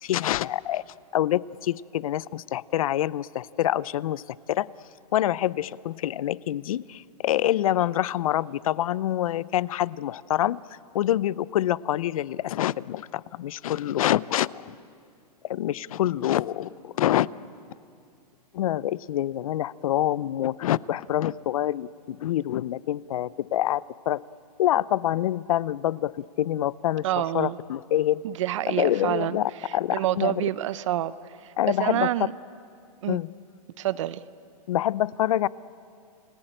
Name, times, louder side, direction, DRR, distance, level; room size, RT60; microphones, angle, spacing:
voice 1, 0.0-0.8 1.1-4.2 4.5-4.7 5.1-10.6 10.9-14.7 15.4-17.3 18.5-24.2 24.6-27.0 27.3-28.2 28.7-30.4 31.6-32.1 33.1-33.3 34.7-35.5, left 12 dB, 60° left, 21 dB, 0.6 m, -26 dB
voice 2, 27.0-27.6 28.2-32.3 33.0-33.2 33.8-34.2, right 13 dB, 50° right, 16 dB, 0.7 m, -28 dB
29.5 x 20.0 x 9.0 m, 2.4 s
hypercardioid pair, 155°, 20 cm